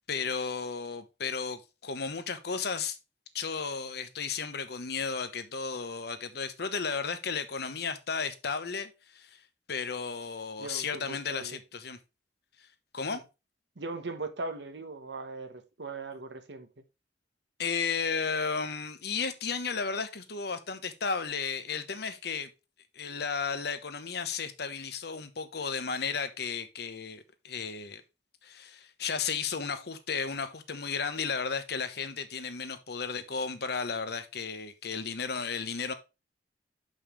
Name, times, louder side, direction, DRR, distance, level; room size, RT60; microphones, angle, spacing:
voice 1, 0.1-3.0 3.3-9.4 9.7-12.0 12.9-13.2 17.6-22.5 22.9-28.0 28.4-35.9, left 5 dB, 65° left, 1.0 m, -34 dB
voice 2, 10.6-11.6 13.1-13.2 13.8-16.7, right 3 dB, 75° right, 1.2 m, -39 dB
7.1 x 5.6 x 3.2 m
head